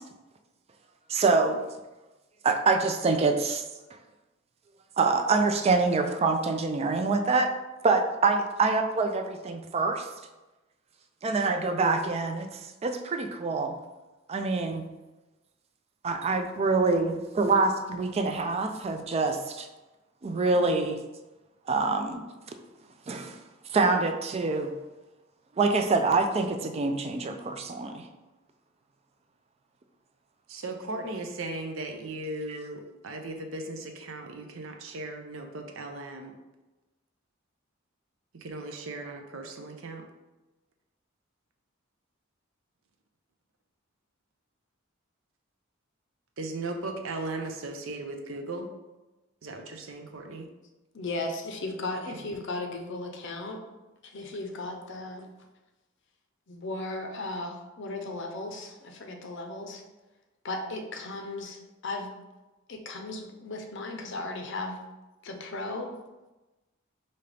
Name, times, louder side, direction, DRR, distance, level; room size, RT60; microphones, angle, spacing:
voice 1, 1.1-1.6 2.4-3.6 5.0-7.5 7.8-10.1 11.2-13.8 14.3-14.9 16.0-19.7 20.2-21.0 21.7-22.2 23.1-23.3 23.7-24.7 25.6-28.0 32.5-32.6, right 3 dB, 30° right, 6 dB, 0.3 m, -25 dB
voice 2, 30.5-36.3 38.3-40.0 46.4-48.7 49.4-50.5 52.1-52.3, right 2 dB, 70° right, 4 dB, 0.6 m, -37 dB
voice 3, 50.9-53.6 54.0-55.2 56.5-59.8 60.4-62.1 62.7-64.8 65.2-65.9, left 2 dB, 60° left, 4 dB, 0.6 m, -36 dB
5.2 x 2.8 x 3.3 m, 1.1 s
head